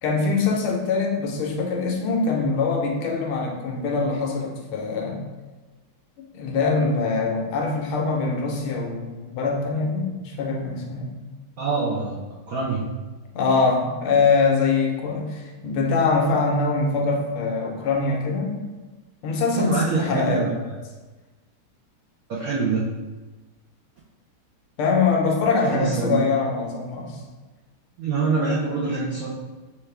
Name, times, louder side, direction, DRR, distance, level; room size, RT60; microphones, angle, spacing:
voice 1, 0.0-5.2 6.3-11.2 13.3-18.6 19.2-20.5 24.8-27.2, left 4 dB, 85° left, 0 dB, 1.6 m, -23 dB
voice 2, 11.6-12.9 19.6-20.5 22.3-22.9 25.7-26.2 28.0-29.3, right 4 dB, 80° right, -5 dB, 0.8 m, -25 dB
6.0 x 2.4 x 3.3 m, 1.2 s
omnidirectional pair, 2.3 m